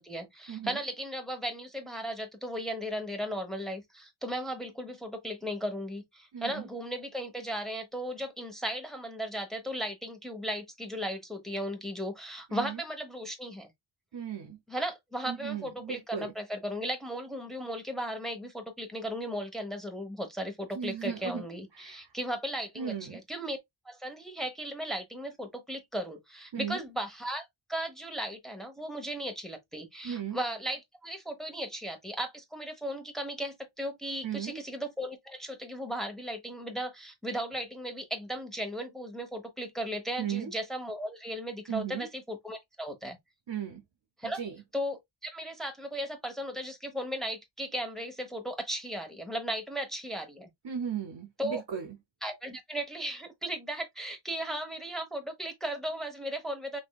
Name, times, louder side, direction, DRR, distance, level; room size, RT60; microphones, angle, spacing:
voice 1, 0.0-13.7 14.7-23.6 23.8-43.2 44.2-44.4 44.7-50.5 51.4-51.6 52.2-56.8, equal, ahead, 1.0 m, -36 dB
voice 2, 6.3-6.6 12.5-12.8 14.1-14.6 15.3-16.3 20.8-21.4 21.8-22.1 22.8-23.2 26.5-26.8 30.0-30.4 34.2-34.6 40.2-40.5 41.7-42.1 43.5-43.8 44.2-44.6 50.6-51.9, right 8 dB, 65° right, 0.6 m, -36 dB
3.5 x 3.2 x 2.3 m
wide cardioid pair, 45°, 45 cm